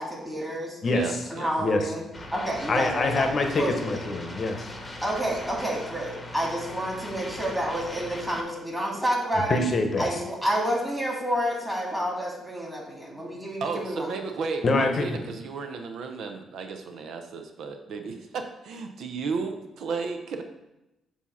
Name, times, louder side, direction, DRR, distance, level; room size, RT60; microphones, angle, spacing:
voice 1, 0.0-0.8 1.3-2.1 2.3-4.0 5.0-9.6 10.0-14.1, equal, 5° right, -2 dB, 2.1 m, -29 dB
voice 2, 0.9-1.5 13.6-20.4, right 4 dB, 70° right, 6 dB, 0.6 m, -33 dB
voice 3, 1.6-1.9 2.7-4.7 9.5-10.1 14.6-15.2, left 3 dB, 45° left, 5 dB, 0.9 m, -25 dB
sound 1, 2.1-8.4, left 1 dB, 15° left, 1.0 m, -40 dB
7.2 x 2.8 x 5.7 m, 0.94 s
cardioid pair, 90°, 0 cm